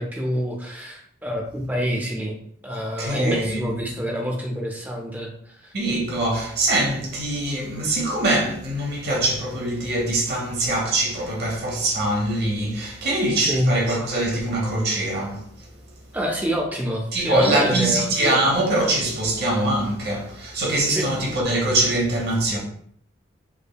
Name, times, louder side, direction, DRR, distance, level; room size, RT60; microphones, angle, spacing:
voice 1, 0.0-2.4 2.6-5.7 13.4-13.7 16.1-18.1 20.9-21.1, equal, 10° right, 0.4 m, -27 dB
voice 2, 2.7-3.6 5.7-15.5 17.1-22.6, right 1 dB, 60° right, 0.7 m, -23 dB
3.4 x 2.1 x 2.2 m
head